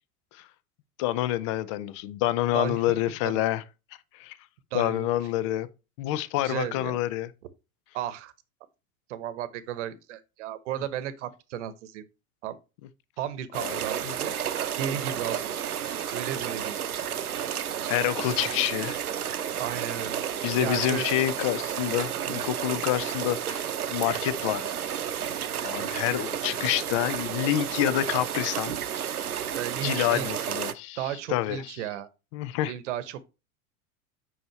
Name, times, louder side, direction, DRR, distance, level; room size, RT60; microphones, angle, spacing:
voice 1, 1.0-3.6 4.1-4.4 4.7-5.7 6.0-7.3 13.6-13.8 14.1-14.2 17.9-19.0 20.4-24.7 25.1-25.3 25.6-28.8 29.8-31.0 31.3-31.7 32.3-32.7, left 14 dB, 25° left, 0.3 m, -27 dB
voice 2, 2.5-3.0 3.2-3.5 4.7-5.1 6.4-7.0 7.9-8.3 9.1-12.1 12.4-12.6 13.2-14.3 14.8-15.5 16.1-16.8 19.6-20.2 20.6-21.1 22.2-22.4 25.8-26.0 29.5-30.3 31.0-32.1 32.7-33.2, right 10 dB, 50° right, 1.0 m, -34 dB
sound 1, 13.5-30.7, right 9 dB, 80° right, 0.8 m, -31 dB
7.8 x 5.6 x 3.1 m
figure-of-eight pair, 90°, 44 cm